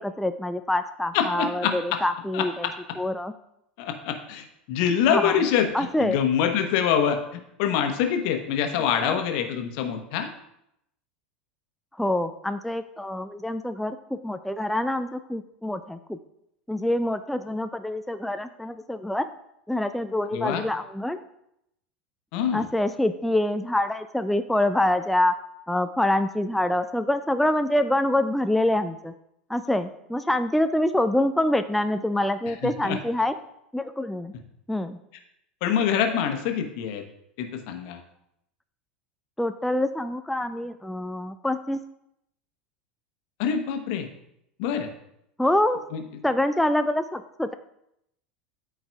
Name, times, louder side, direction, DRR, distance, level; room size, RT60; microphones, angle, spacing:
voice 1, 0.0-2.7 3.0-3.3 5.1-5.4 5.7-6.2 9.0-9.1 12.0-16.2 16.7-19.3 19.7-21.2 22.5-25.3 25.7-29.1 29.5-33.3 33.7-34.3 34.7-35.0 39.4-41.8 45.4-45.8 46.2-47.5, left 1 dB, ahead, 9 dB, 0.4 m, -25 dB
voice 2, 1.1-2.0 2.3-2.7 3.8-10.3 20.3-20.6 22.3-22.6 32.6-33.0 35.6-37.0 37.4-38.0 43.4-44.1 44.6-44.9 45.9-46.0, left 8 dB, 55° left, 6 dB, 1.1 m, -25 dB
12.5 x 4.6 x 2.4 m, 0.79 s
figure-of-eight pair, 80°, 5 cm